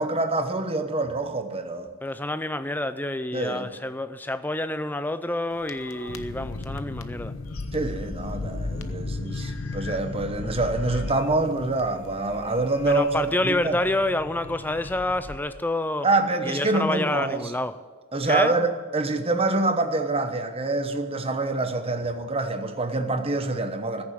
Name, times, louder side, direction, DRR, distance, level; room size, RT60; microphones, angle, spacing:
voice 1, 0.0-1.9 3.3-3.7 7.7-13.8 16.0-17.5 18.1-24.0, right 2 dB, 25° right, 1.0 m, -26 dB
voice 2, 2.0-7.3 12.9-16.1 16.4-17.8 18.3-18.5, left 1 dB, 10° left, 0.5 m, -28 dB
sound 1, 5.5-15.4, left 2 dB, 65° left, 0.8 m, -35 dB
14.5 x 7.1 x 9.1 m
head